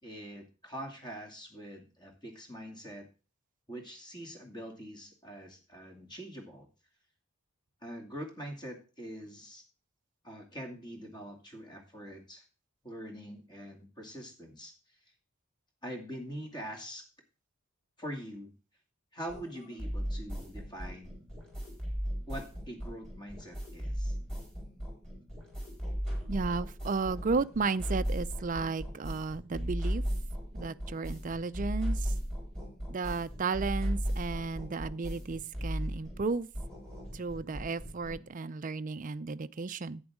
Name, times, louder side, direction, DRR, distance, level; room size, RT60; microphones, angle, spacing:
voice 1, 0.0-3.1 3.7-6.7 7.8-9.6 10.2-12.4 12.8-14.7 15.8-17.1 18.0-18.5 19.1-21.2 22.3-24.2, equal, 20° left, 2.3 m, -44 dB
sound 1, 19.3-38.3, equal, 5° left, 4.5 m, -36 dB
voice 2, 26.3-30.0 30.5-32.1 32.9-36.5 37.1-40.0, right 4 dB, 35° right, 0.4 m, -33 dB
11.0 x 8.8 x 3.6 m
head